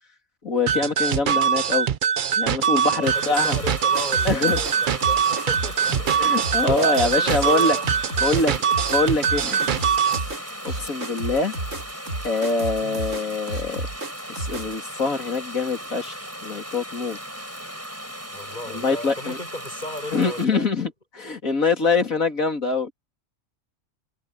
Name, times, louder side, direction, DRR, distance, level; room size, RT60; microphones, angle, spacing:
voice 1, 0.4-1.9 2.4-3.6 4.3-4.6 6.2-7.8 8.2-8.5 8.9-9.8 10.4-11.5 12.2-13.9 14.3-17.2 18.7-19.4 20.1-22.9, left 3 dB, 90° left, 3.6 m, -24 dB
sound 1, 0.7-10.3, right 7 dB, 50° right, 0.6 m, -22 dB
voice 2, 3.0-7.9 8.3-9.1 11.3-11.4 12.8-13.0 18.3-20.9, left 1 dB, 35° left, 7.5 m, -36 dB
sound 2, 3.0-20.4, equal, 10° right, 6.4 m, -37 dB
sound 3, 3.6-14.7, right 2 dB, 70° right, 3.3 m, -32 dB
omnidirectional pair, 1.4 m